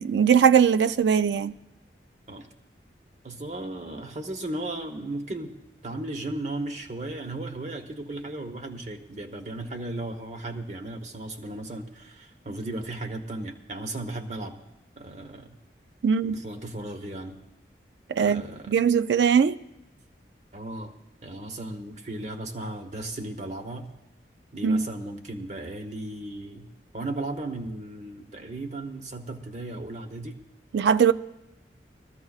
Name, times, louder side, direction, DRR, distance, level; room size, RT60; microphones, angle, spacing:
voice 1, 0.0-1.6 16.0-16.4 18.1-19.6 24.6-24.8 30.7-31.1, right 7 dB, 75° right, 0.3 m, -20 dB
voice 2, 3.2-5.6 5.8-14.6 15.0-15.6 16.2-17.4 18.2-18.7 20.5-20.9 21.2-23.9 24.5-30.4, right 2 dB, 40° right, 1.0 m, -36 dB
21.0 x 14.0 x 2.4 m
head